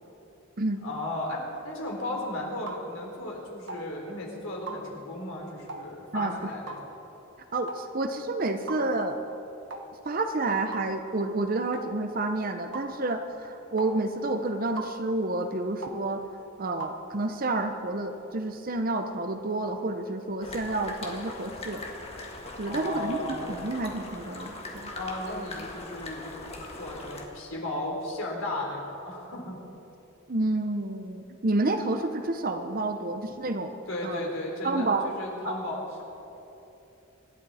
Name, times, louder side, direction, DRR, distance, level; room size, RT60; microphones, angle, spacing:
voice 1, 0.8-6.9 22.7-23.5 24.9-26.4 26.8-29.6 33.9-36.0, left 1 dB, 85° left, -1 dB, 3.8 m, -35 dB
sound 1, 2.7-2.8 3.7-3.9 4.7-4.8 5.7-5.9 6.7-6.9 7.7-7.9 8.7-8.8 9.7-9.9 10.7-10.9 11.7-11.9 12.7-12.9 13.8-14.0 14.8-15.0 15.8-16.0 16.8-17.0, right 3 dB, 60° right, 1.2 m, -38 dB
voice 2, 7.5-9.2 10.0-16.2 16.6-21.8 22.6-24.9 30.3-33.7 34.0-34.2 34.6-35.1 35.4-35.5, right 2 dB, 45° right, 7 dB, 0.8 m, -29 dB
sound 2, 20.4-27.3, left 2 dB, 30° left, 1.6 m, -40 dB
25.5 x 11.5 x 4.2 m, 3.0 s
head